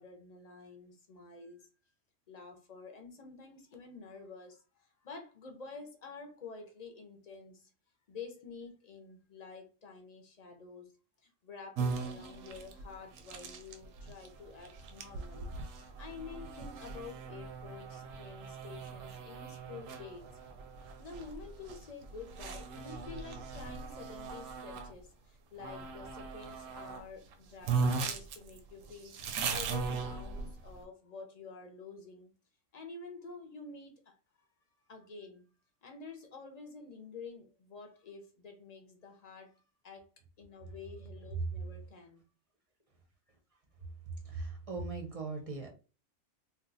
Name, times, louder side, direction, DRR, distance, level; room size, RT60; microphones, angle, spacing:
voice 1, 0.0-1.7 2.3-7.7 8.1-10.9 11.2-20.2 21.0-29.2 29.5-32.3 32.7-34.1 34.9-35.5 35.8-40.1 40.4-42.2, left 4 dB, 45° left, 0.6 m, -49 dB
sound 1, 11.8-24.9 25.6-27.0 27.3-27.4 27.6-30.8, right 4 dB, 90° right, 1.0 m, -39 dB
voice 2, 44.3-45.7, right 3 dB, 40° right, 0.5 m, -39 dB
2.7 x 2.2 x 3.8 m
omnidirectional pair, 1.3 m